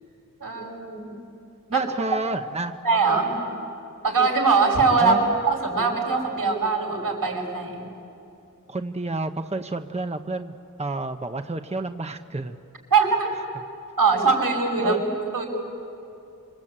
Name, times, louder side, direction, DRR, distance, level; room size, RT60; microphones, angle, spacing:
voice 1, 0.4-1.1 1.7-1.9 2.8-3.4 4.0-5.1 5.5-7.8 12.9-13.3 14.0-15.0 15.3-15.5, right 4 dB, 75° right, 0 dB, 6.4 m, -22 dB
voice 2, 1.7-2.8 5.0-5.4 8.7-12.6 14.8-15.0, right 2 dB, 20° right, 7 dB, 0.9 m, -30 dB
26.5 x 25.0 x 8.8 m, 2.7 s
wide cardioid pair, 65°, 34 cm